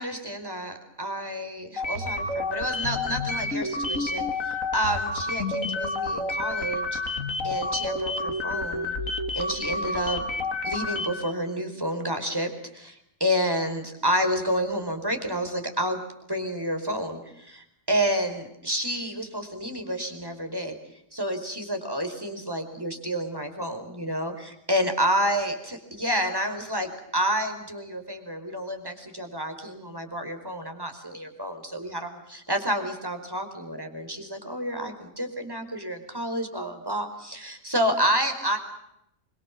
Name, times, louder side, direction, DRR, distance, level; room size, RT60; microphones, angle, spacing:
voice 1, 0.0-7.0 7.4-8.9 9.3-10.2 10.6-16.0 16.3-20.8 21.1-25.5 26.0-38.6, equal, 15° right, 6 dB, 4.8 m, -29 dB
sound 1, 1.8-11.3, left 2 dB, 80° left, 2.8 m, -29 dB
27.5 x 24.0 x 7.4 m, 0.80 s
omnidirectional pair, 1.4 m